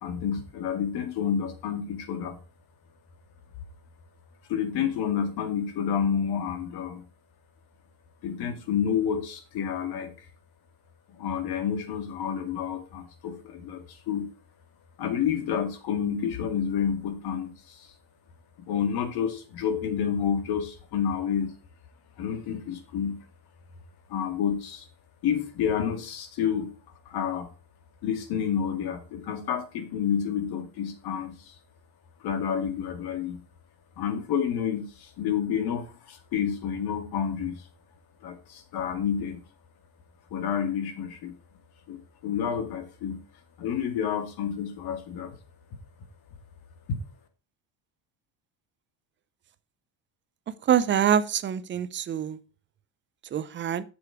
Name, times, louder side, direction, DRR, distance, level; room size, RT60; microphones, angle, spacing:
voice 1, 0.0-2.4 4.5-7.0 8.2-10.3 11.2-14.3 15.0-17.9 18.7-21.5 22.2-23.2 24.1-24.9 25.2-26.7 27.1-27.5 28.0-31.5 32.2-33.4 34.0-37.6 38.2-39.4 40.3-41.3 41.9-43.2 43.6-45.4, left 8 dB, 55° left, 2.1 m, -29 dB
voice 2, 50.7-52.4 53.3-53.8, right 9 dB, 25° right, 0.5 m, -25 dB
8.0 x 6.9 x 4.7 m
cardioid pair, 145°, 44 cm